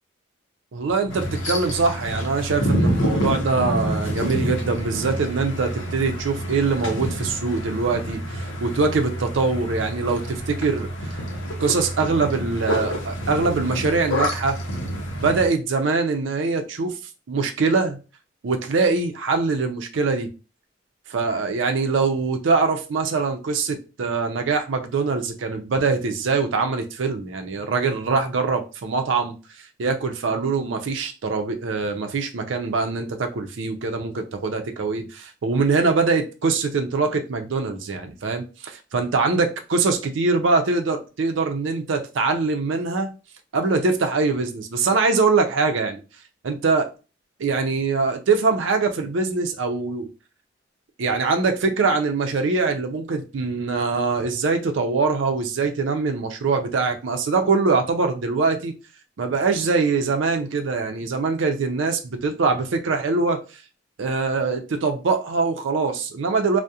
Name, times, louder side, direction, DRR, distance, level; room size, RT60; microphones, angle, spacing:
voice 1, 0.7-11.2 11.6-14.6 15.2-17.0 17.3-18.0 18.4-20.3 21.1-29.4 29.8-43.1 43.5-46.0 46.4-46.9 47.4-50.1 51.0-58.8 59.2-63.4 64.0-66.6, right 4 dB, 70° right, 5 dB, 0.5 m, -23 dB
sound 1, 1.1-15.5, equal, 80° left, 0.6 m, -28 dB
2.3 x 2.1 x 2.7 m, 0.32 s
head